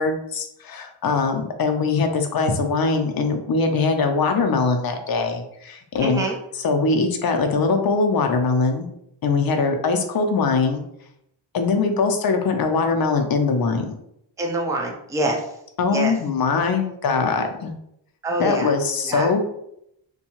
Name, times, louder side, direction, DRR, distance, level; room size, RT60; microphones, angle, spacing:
voice 1, 0.0-6.3 6.6-8.9 9.2-10.8 11.5-14.0 15.8-17.7 18.4-19.4, left 4 dB, 50° left, 5 dB, 0.5 m, -22 dB
voice 2, 6.0-6.4 14.4-15.5 15.9-16.1 18.2-18.7 19.0-19.3, right 2 dB, 10° right, 1 dB, 0.3 m, -25 dB
2.6 x 2.2 x 2.9 m, 0.76 s
wide cardioid pair, 115°, 47 cm